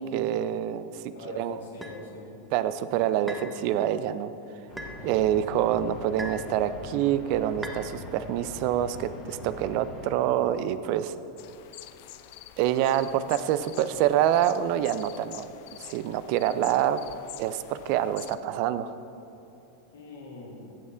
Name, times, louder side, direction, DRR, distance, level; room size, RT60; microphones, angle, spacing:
voice 1, 0.0-1.6 2.5-4.3 5.0-11.1 12.6-15.5 15.8-17.0 17.4-18.9, right 11 dB, 55° right, 13 dB, 0.3 m, -26 dB
voice 2, 1.1-2.4 13.7-14.1 19.9-20.8, left 3 dB, 80° left, -3 dB, 2.1 m, -43 dB
sound 1, 1.8-2.0 3.3-3.5 4.8-5.0 6.2-6.5 7.6-7.8, right 1 dB, 10° right, 1.0 m, -38 dB
sound 2, 4.7-10.1, left 2 dB, 45° left, 1.7 m, -42 dB
sound 3, 11.4-18.4, left 14 dB, 60° left, 0.3 m, -47 dB
14.5 x 7.0 x 2.5 m, 2.9 s
hypercardioid pair, 90°, 0 cm